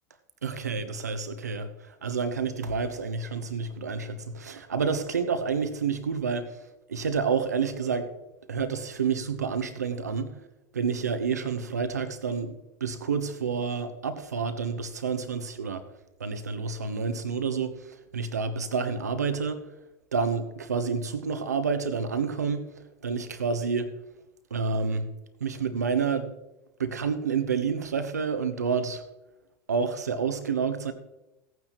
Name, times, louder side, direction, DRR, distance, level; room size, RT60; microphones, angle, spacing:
voice 1, 0.4-6.5 6.9-8.1 8.5-10.3 10.7-15.8 16.2-19.6 20.1-22.6 23.0-23.9 24.5-25.0 25.4-26.3 26.8-29.0 29.7-30.9, right 5 dB, 85° right, 1.0 m, -29 dB
17.0 x 9.2 x 3.1 m
hypercardioid pair, 80°, 9 cm